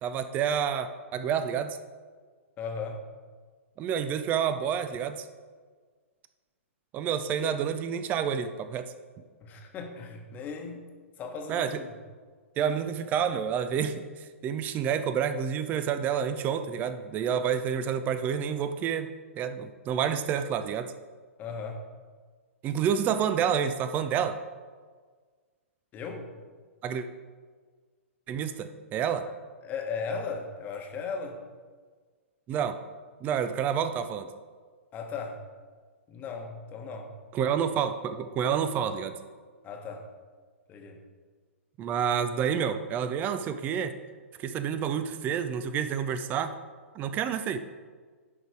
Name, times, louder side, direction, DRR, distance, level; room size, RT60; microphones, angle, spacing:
voice 1, 0.0-1.8 3.8-5.2 6.9-8.9 11.5-11.8 12.6-19.1 19.4-20.9 22.6-24.4 26.8-27.1 28.3-29.3 32.5-32.8 33.2-34.3 37.3-39.1 41.8-43.9 44.4-46.5 46.9-47.6, right 8 dB, 25° right, 10 dB, 0.5 m, -29 dB
voice 2, 2.6-3.0 9.4-10.9 11.2-11.9 21.4-21.8 25.9-26.3 29.6-31.4 34.9-35.4 36.1-37.1 39.6-40.1 40.7-41.0, left 5 dB, 25° left, 2 dB, 1.1 m, -37 dB
11.0 x 4.0 x 4.7 m, 1.5 s
figure-of-eight pair, 115°, 7 cm